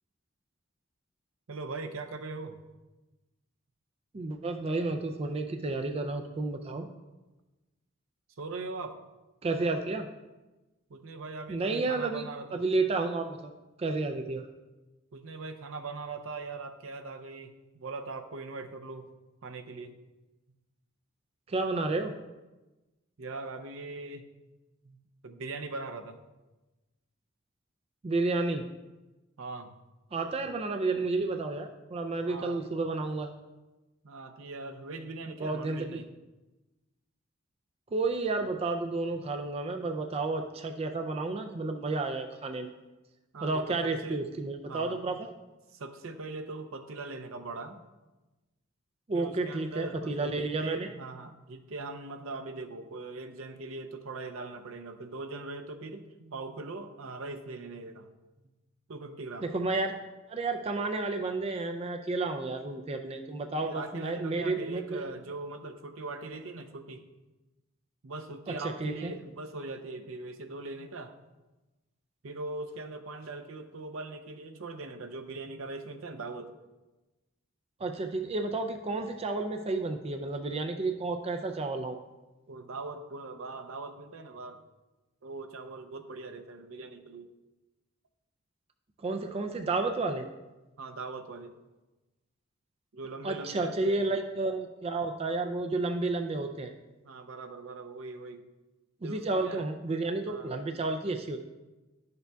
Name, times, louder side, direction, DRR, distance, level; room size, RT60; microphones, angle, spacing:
voice 1, 1.5-2.6 8.4-9.0 10.9-12.6 15.1-19.1 19.4-20.0 23.2-24.3 24.8-25.0 25.2-26.2 29.4-29.8 32.2-32.7 34.0-36.1 43.3-44.3 44.7-45.2 45.7-47.8 49.1-58.1 58.9-59.5 63.6-67.0 68.0-71.1 72.2-76.5 82.5-84.6 85.2-87.3 90.8-91.6 92.9-94.2 97.0-98.5 99.0-99.7 100.3-100.5, right 3 dB, 70° right, 7 dB, 0.6 m, -41 dB
voice 2, 4.1-6.9 9.4-10.1 11.5-13.5 13.8-14.5 21.5-22.1 28.0-28.6 30.1-33.3 35.3-36.0 37.9-42.7 43.4-45.3 49.1-50.9 59.4-60.0 60.3-65.1 68.5-68.6 68.8-69.1 77.8-82.0 89.0-90.3 93.2-96.7 99.0-101.4, right 3 dB, 30° right, 5 dB, 0.3 m, -31 dB
11.0 x 6.7 x 2.3 m, 1.1 s
head